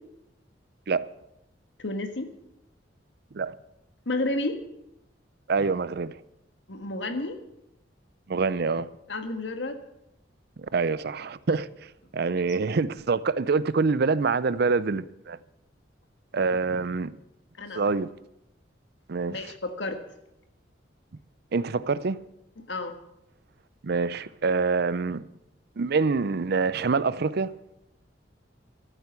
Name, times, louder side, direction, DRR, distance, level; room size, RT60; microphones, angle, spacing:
voice 1, 1.8-2.3 4.1-4.6 6.7-7.4 9.1-9.8 12.4-12.5 17.6-17.9 19.3-20.0 22.6-22.9, left 2 dB, 75° left, 1.6 m, -31 dB
voice 2, 5.5-6.2 8.3-8.9 10.6-11.7 12.1-15.4 16.3-17.1 17.7-18.1 19.1-19.5 21.5-22.2 23.8-25.2 25.8-27.5, right 4 dB, 60° right, 0.5 m, -26 dB
13.5 x 9.2 x 8.3 m
head